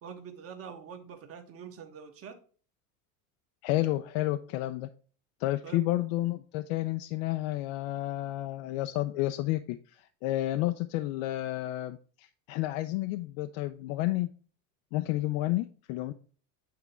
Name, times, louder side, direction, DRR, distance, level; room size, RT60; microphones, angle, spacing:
voice 1, 0.0-2.4 5.6-5.8, right 7 dB, 35° right, 5 dB, 1.3 m, -45 dB
voice 2, 3.6-4.9 5.4-14.3 14.9-16.1, left 16 dB, 70° left, 9 dB, 0.6 m, -31 dB
8.6 x 3.4 x 4.2 m, 0.41 s
supercardioid pair, 135°, 40 cm